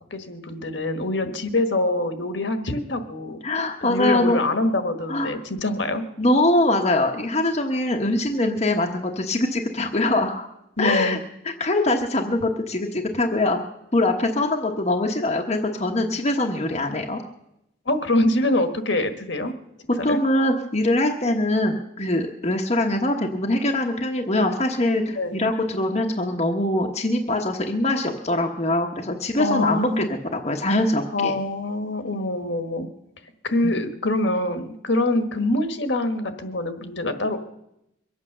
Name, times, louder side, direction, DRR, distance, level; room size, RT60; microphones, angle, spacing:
voice 1, 0.1-3.4 3.8-6.0 10.8-11.2 17.8-19.5 20.1-20.2 25.2-25.3 29.4-30.1 31.1-32.9 33.4-37.4, left 2 dB, 60° left, 8 dB, 1.5 m, -24 dB
voice 2, 3.4-4.4 5.1-5.3 6.2-10.5 10.8-11.2 11.4-13.6 13.9-17.2 20.0-31.3 33.6-33.7, left 1 dB, 35° left, 2 dB, 1.1 m, -23 dB
23.0 x 8.6 x 6.6 m, 0.83 s
head